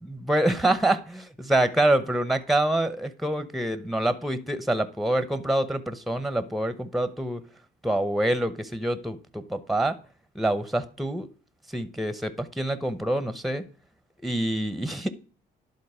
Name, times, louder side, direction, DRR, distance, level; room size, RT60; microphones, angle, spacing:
voice 1, 0.0-7.4 7.8-10.0 10.3-11.3 11.7-13.7 14.2-15.1, right 1 dB, ahead, 12 dB, 0.8 m, -26 dB
11.5 x 3.8 x 4.9 m, 0.40 s
cardioid pair, 90°, 20 cm